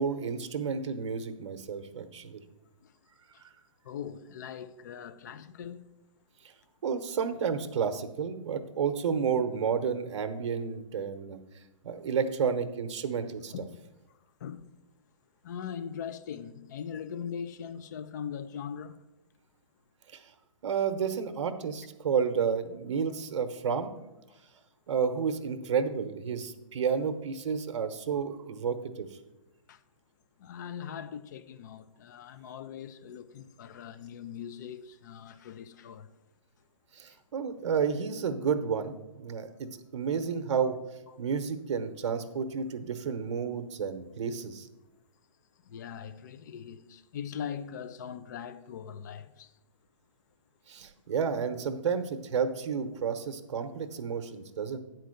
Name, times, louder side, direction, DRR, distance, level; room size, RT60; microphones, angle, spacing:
voice 1, 0.0-2.4 6.8-11.4 11.8-13.5 20.1-20.3 20.6-23.9 24.9-29.1 36.9-40.8 41.2-44.7 50.7-54.8, right 6 dB, 55° right, 0.9 m, -31 dB
voice 2, 3.8-5.9 12.2-12.4 13.5-14.7 15.4-19.1 24.3-24.4 29.7-29.8 30.4-36.1 41.1-41.2 45.6-49.5 53.0-53.1, left 8 dB, 35° left, 0.4 m, -41 dB
9.2 x 4.5 x 6.4 m
hypercardioid pair, 160°, 18 cm